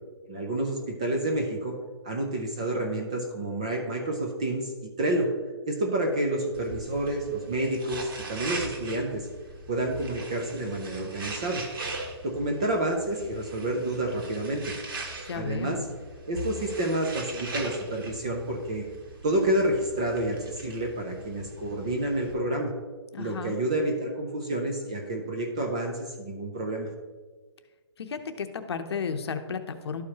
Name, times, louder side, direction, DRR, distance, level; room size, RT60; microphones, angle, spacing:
voice 1, 0.3-1.7 2.0-4.7 5.0-5.3 5.7-9.3 9.7-11.6 12.2-14.7 15.3-15.8 16.3-18.9 19.2-22.7 23.2-26.9, right 1 dB, 15° right, 1 dB, 0.3 m, -29 dB
sound 1, 6.5-22.3, right 2 dB, 50° right, 1.5 m, -40 dB
voice 2, 15.2-15.9 23.1-23.6 28.0-30.0, left 5 dB, 60° left, 8 dB, 0.8 m, -33 dB
12.5 x 4.7 x 2.8 m, 1.4 s
hypercardioid pair, 170°, 15 cm